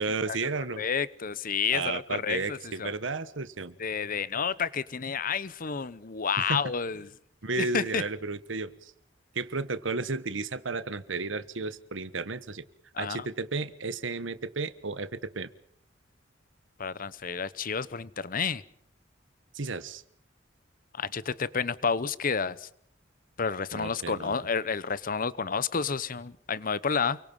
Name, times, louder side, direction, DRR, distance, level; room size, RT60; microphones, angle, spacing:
voice 1, 0.0-0.8 1.7-3.8 6.4-6.6 7.4-8.9 9.3-12.6 13.0-15.5 19.5-20.0 23.7-24.4, right 3 dB, 85° right, 15 dB, 1.3 m, -33 dB
voice 2, 0.8-2.9 3.8-7.1 7.6-8.0 12.9-13.3 16.8-18.6 20.9-22.7 23.4-27.2, left 6 dB, 45° left, 19 dB, 0.9 m, -30 dB
29.0 x 23.0 x 5.5 m, 0.71 s
head